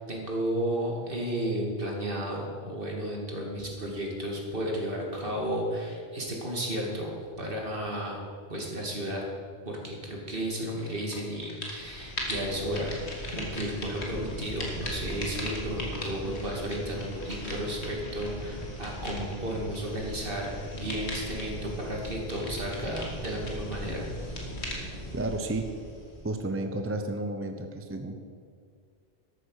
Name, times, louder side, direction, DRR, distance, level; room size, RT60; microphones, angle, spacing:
voice 1, 0.0-8.2 8.5-9.2 9.7-24.3, right 1 dB, 60° right, -1 dB, 2.6 m, -33 dB
sound 1, 10.8-11.2 11.4-26.4, left 1 dB, 85° left, 2.3 m, -38 dB
voice 2, 25.1-25.8 26.2-28.2, right 2 dB, 15° right, 6 dB, 0.6 m, -32 dB
12.5 x 8.7 x 6.5 m, 2.1 s
omnidirectional pair, 1.1 m